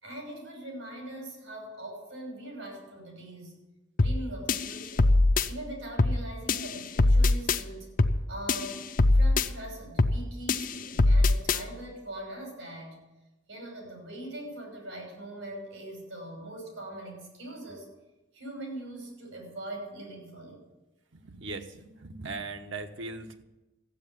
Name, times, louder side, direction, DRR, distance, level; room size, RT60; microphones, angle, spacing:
voice 1, 0.0-3.5 4.0-5.1 5.4-7.9 8.3-8.9 9.1-12.9 13.5-17.9 18.3-20.6, right 1 dB, 90° right, 1 dB, 6.0 m, -41 dB
sound 1, 4.0-4.2 4.5-5.5 6.0-6.2 6.5-7.6 8.0-8.2 8.5-9.5 10.0-10.2 10.5-11.6, left 2 dB, 45° left, 0.6 m, -22 dB
voice 2, 21.1-23.4, right 3 dB, 70° right, 6 dB, 1.1 m, -39 dB
14.5 x 8.1 x 9.2 m, 1.0 s
head